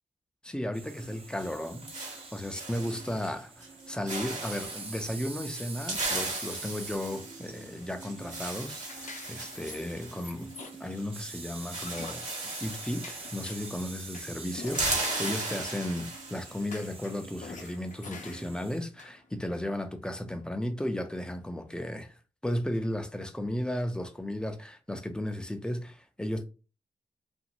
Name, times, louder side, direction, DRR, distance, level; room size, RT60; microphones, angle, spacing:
voice 1, 0.4-10.5 10.8-12.2 12.6-26.4, left 1 dB, 5° left, 0.5 m, -35 dB
sound 1, 0.7-18.8, right 4 dB, 45° right, 0.7 m, -46 dB
sound 2, 1.4-3.3 3.6-3.8 4.1-4.9 5.5-11.0 11.2-11.3 11.6-14.0 14.2-16.6, right 2 dB, 60° right, 1.3 m, -37 dB
sound 3, 7.3-22.0, left 4 dB, 65° left, 0.6 m, -49 dB
2.6 x 2.5 x 2.9 m
cardioid pair, 80°, 14 cm